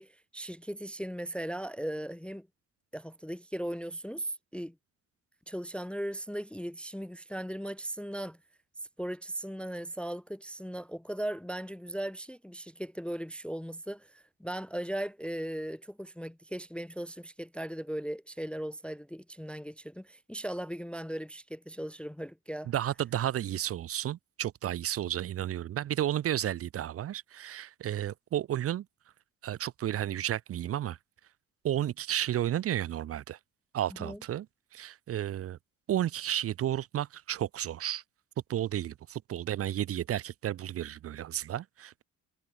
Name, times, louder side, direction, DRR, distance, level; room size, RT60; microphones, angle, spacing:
voice 1, 0.0-2.5 2.9-4.8 5.5-8.4 9.0-22.7 34.0-34.2, right 1 dB, 5° left, 0.4 m, -38 dB
voice 2, 22.7-28.9 29.4-31.0 31.6-33.4 33.7-34.5 34.7-35.6 35.9-38.0 38.5-42.0, right 11 dB, 50° right, 0.5 m, -32 dB
cardioid pair, 90°, 30 cm